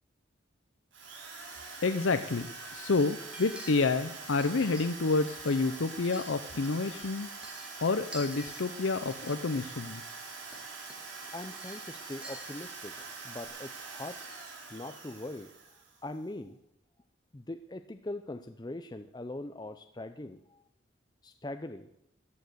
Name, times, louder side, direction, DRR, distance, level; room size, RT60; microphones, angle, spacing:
Drill, 0.9-16.1, right 4 dB, 65° right, 3.9 m, -44 dB
voice 1, 1.8-7.3 7.8-10.0, left 3 dB, 75° left, 10 dB, 0.6 m, -29 dB
sound 1, 3.3-5.1 5.4-6.7 6.9-8.6 9.0-9.5 10.4-10.6 10.9-13.2 13.4-13.5, right 1 dB, 5° right, 1.8 m, -49 dB
voice 2, 11.3-14.2 14.7-15.5 16.0-16.6 17.3-20.6 21.2-21.9, left 2 dB, 20° left, 8 dB, 0.5 m, -41 dB
14.0 x 10.5 x 6.8 m, 0.79 s
head